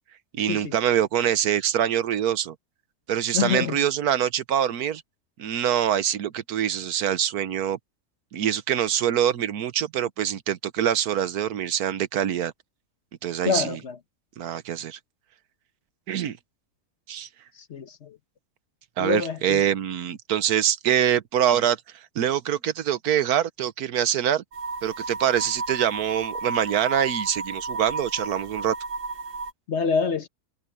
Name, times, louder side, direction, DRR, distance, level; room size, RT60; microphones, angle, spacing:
voice 1, 0.3-2.5 3.1-5.0 5.4-7.8 8.3-12.5 13.2-13.8 14.4-15.0 16.1-16.4 17.1-17.3 19.0-21.8 22.1-24.4 24.8-28.7, right 10 dB, 80° right, 1.4 m, -24 dB
voice 2, 3.3-3.8 13.4-14.0 17.7-18.2 19.0-19.6 29.7-30.3, left 6 dB, 50° left, 1.2 m, -26 dB
sound 1, 24.5-29.5, right 4 dB, 50° right, 0.8 m, -33 dB
omnidirectional pair, 1.6 m